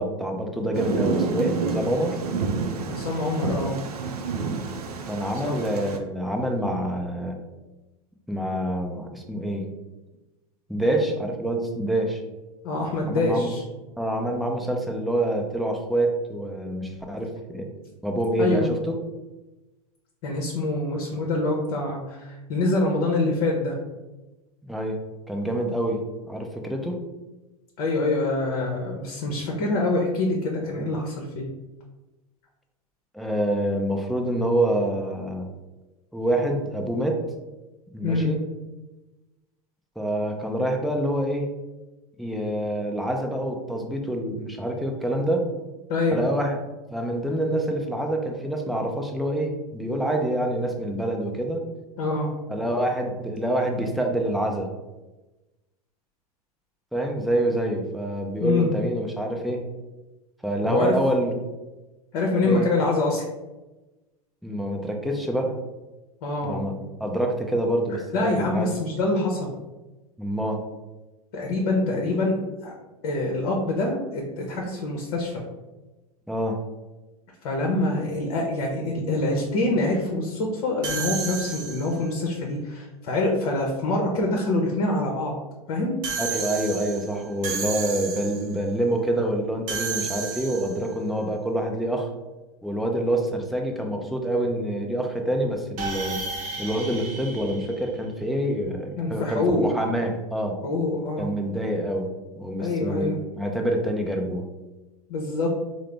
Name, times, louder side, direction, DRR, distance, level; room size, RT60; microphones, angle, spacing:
voice 1, 0.0-2.2 5.1-7.4 8.3-9.7 10.7-12.2 13.0-13.5 14.0-17.7 18.0-18.9 24.6-25.0 25.3-26.0 26.3-27.0 33.1-35.5 36.1-37.2 37.9-38.4 40.0-41.5 42.2-45.5 46.1-46.6 46.9-51.6 52.5-54.7 56.9-59.6 60.4-61.3 62.4-62.7 64.4-65.5 66.4-68.7 70.2-70.6 76.3-76.6 86.2-92.1 92.6-96.2 96.6-100.6 101.2-102.1 102.4-104.5, right 1 dB, ahead, 1 dB, 0.5 m, -26 dB
Thunder, 0.7-6.0, right 4 dB, 85° right, 0.4 m, -29 dB
voice 2, 2.9-3.8 5.4-5.6 12.6-13.6 18.4-18.7 20.2-23.7 27.8-31.5 38.0-38.3 45.9-46.2 52.0-52.3 58.4-58.7 60.6-60.9 62.1-63.2 66.2-66.6 67.9-69.5 71.3-72.7 73.0-75.3 77.4-85.3 85.7-86.0 99.0-99.7 100.6-101.3 102.6-103.1 105.1-105.5, left 2 dB, 55° left, -1 dB, 0.7 m, -25 dB
sound 1, 80.8-82.1 86.0-88.6 89.7-90.9 95.8-98.3, right 5 dB, 45° right, 0.8 m, -32 dB
3.7 x 2.0 x 3.3 m, 1.1 s
hypercardioid pair, 95°, 19 cm